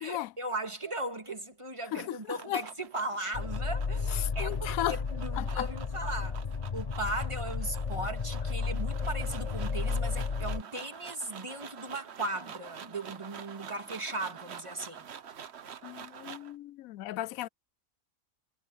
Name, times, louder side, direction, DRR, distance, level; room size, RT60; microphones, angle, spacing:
voice 1, 0.0-6.4 6.7-15.1, right 2 dB, 20° right, 2.1 m, -37 dB
voice 2, 1.9-2.6 4.1-5.0 5.4-5.7 15.8-17.5, left 14 dB, 85° left, 1.0 m, -35 dB
sound 1, 1.9-16.6, right 8 dB, 55° right, 1.1 m, -47 dB
sound 2, 3.3-10.6, left 5 dB, 35° left, 0.8 m, -33 dB
omnidirectional pair, 1.4 m